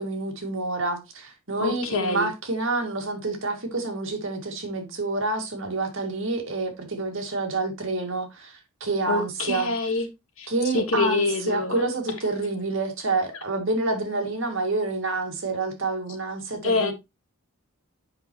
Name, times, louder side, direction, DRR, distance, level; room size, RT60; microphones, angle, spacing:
voice 1, 0.0-9.7 10.5-16.9, right 3 dB, 60° right, 2.1 m, -28 dB
voice 2, 1.6-2.3 9.1-10.1 10.4-11.8 16.6-16.9, left 3 dB, 70° left, 1.6 m, -26 dB
7.7 x 5.7 x 2.9 m
head